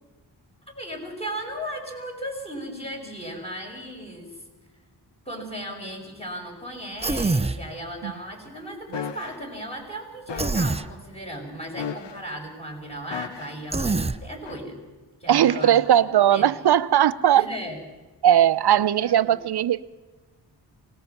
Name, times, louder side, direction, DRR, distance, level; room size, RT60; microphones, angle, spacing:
voice 1, 0.7-4.3 5.2-14.8 15.2-15.7 16.3-16.4 17.3-17.8 18.7-19.3, equal, 15° left, 6.5 m, -36 dB
Human voice, 7.0-7.6 10.4-10.9 13.7-14.2, right 3 dB, 15° right, 0.7 m, -24 dB
sound 1, 8.9-9.4 10.3-10.8 11.8-12.4 13.1-13.7 14.5-14.6, left 8 dB, 90° left, 1.0 m, -35 dB
voice 2, 15.3-17.5 18.2-19.8, right 10 dB, 65° right, 0.8 m, -19 dB
24.5 x 19.5 x 5.9 m
wide cardioid pair, 100°, 41 cm